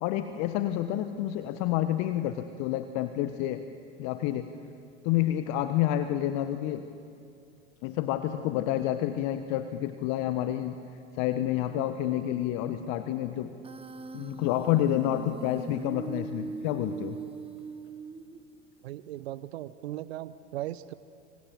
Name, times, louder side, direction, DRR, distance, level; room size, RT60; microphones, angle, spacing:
voice 1, 0.0-3.7 4.0-4.6 5.0-6.9 7.8-10.8 11.1-13.6 14.1-17.2, left 12 dB, 50° left, 9 dB, 1.3 m, -29 dB
Human voice, 13.6-18.6, right 5 dB, 15° right, 1.4 m, -41 dB
voice 2, 18.8-20.9, right 14 dB, 70° right, 16 dB, 0.9 m, -38 dB
26.5 x 26.5 x 7.7 m, 2.5 s
figure-of-eight pair, 80°, 33 cm